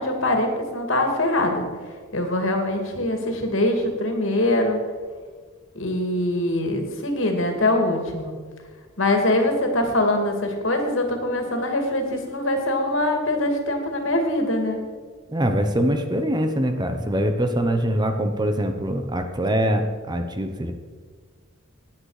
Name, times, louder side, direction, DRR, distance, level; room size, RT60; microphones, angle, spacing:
voice 1, 0.0-1.7 2.1-4.8 5.7-8.3 9.0-14.8, left 1 dB, 65° left, 4 dB, 2.4 m, -23 dB
voice 2, 15.3-20.7, equal, 20° right, 6 dB, 0.9 m, -23 dB
16.5 x 10.5 x 4.9 m, 1.5 s
head